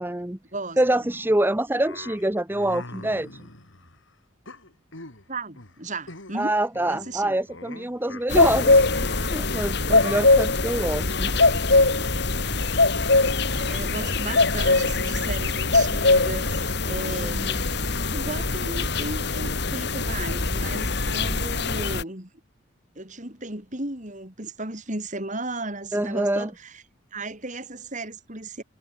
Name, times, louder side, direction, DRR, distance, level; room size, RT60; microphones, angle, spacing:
voice 1, 0.0-0.4 0.8-3.5 6.3-11.3 17.2-17.6 25.9-26.5, right 1 dB, 10° right, 0.9 m, -26 dB
sound 1, 1.8-4.0 4.5-5.3 5.6-5.8 6.1-6.5 6.7-9.2 9.9-10.3, left 2 dB, 85° left, 5.7 m, -42 dB
voice 2, 5.3-6.6 6.9-7.4 13.5-17.8 18.1-22.3 22.9-26.8 27.1-28.6, right 2 dB, 40° right, 4.9 m, -35 dB
sound 2, 8.3-22.0, left 3 dB, 60° left, 2.7 m, -22 dB
head